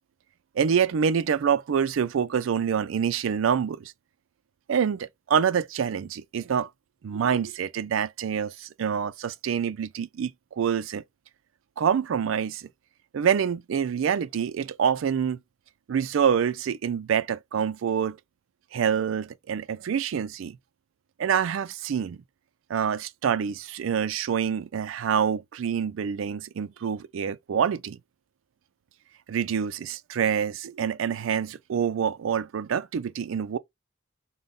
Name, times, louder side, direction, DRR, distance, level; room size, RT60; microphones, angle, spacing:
voice 1, 0.6-3.9 4.7-6.7 7.0-10.3 10.6-11.0 11.8-12.7 13.1-15.4 15.9-18.2 18.7-20.6 21.2-22.2 22.7-28.0 29.3-33.6, right 7 dB, 70° right, 0.4 m, -26 dB
3.8 x 2.1 x 3.5 m
head